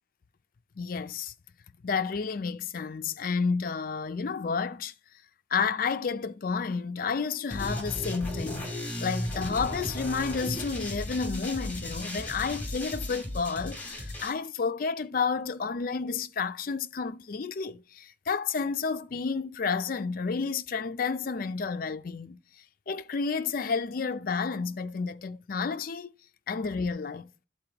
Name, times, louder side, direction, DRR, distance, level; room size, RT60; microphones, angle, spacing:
voice 1, 0.8-1.3 1.8-4.9 5.5-8.7 9.0-22.4 22.9-26.1 26.5-27.3, left 5 dB, 50° left, 0.4 m, -31 dB
sound 1, 7.5-14.3, left 1 dB, 10° left, 2.5 m, -35 dB
11.5 x 4.1 x 2.9 m
head